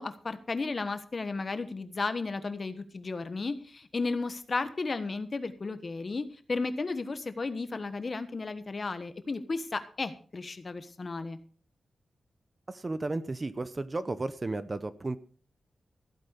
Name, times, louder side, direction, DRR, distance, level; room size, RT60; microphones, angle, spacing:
voice 1, 0.0-11.4, left 3 dB, 35° left, 10 dB, 1.3 m, -34 dB
voice 2, 12.7-15.2, right 2 dB, 25° right, 13 dB, 0.6 m, -33 dB
15.0 x 8.8 x 5.2 m, 0.41 s
wide cardioid pair, 165°, 0 cm